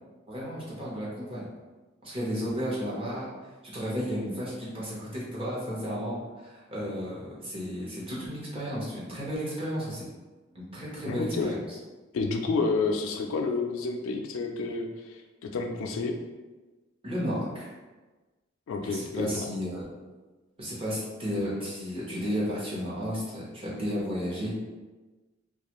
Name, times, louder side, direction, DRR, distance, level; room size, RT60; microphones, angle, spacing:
voice 1, 0.3-1.4 2.0-3.3 3.6-10.1 10.5-11.8 17.0-17.7 18.8-19.9 20.6-24.6, equal, 30° right, -7 dB, 0.8 m, -33 dB
voice 2, 11.1-11.5 12.1-16.2 18.7-19.5, left 3 dB, 70° left, 4 dB, 0.3 m, -30 dB
2.4 x 2.3 x 2.9 m, 1.2 s
head